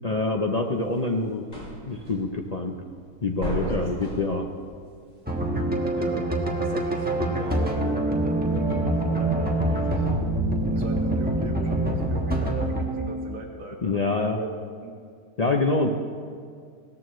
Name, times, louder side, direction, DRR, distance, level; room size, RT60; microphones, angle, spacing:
voice 1, 0.0-1.4 1.8-2.8 3.2-4.5 13.8-14.4 15.4-15.9, left 3 dB, 55° left, 2 dB, 0.4 m, -25 dB
sound 1, 0.6-12.7, equal, 30° left, 2.6 m, -39 dB
voice 2, 3.5-3.9 5.9-6.3 6.6-10.1 10.6-14.5 14.8-14.9, right 4 dB, 60° right, 1 dB, 1.4 m, -39 dB
sound 2, 5.3-13.3, right 1 dB, 5° right, 1.1 m, -25 dB
17.0 x 14.0 x 3.1 m, 2.2 s
omnidirectional pair, 1.6 m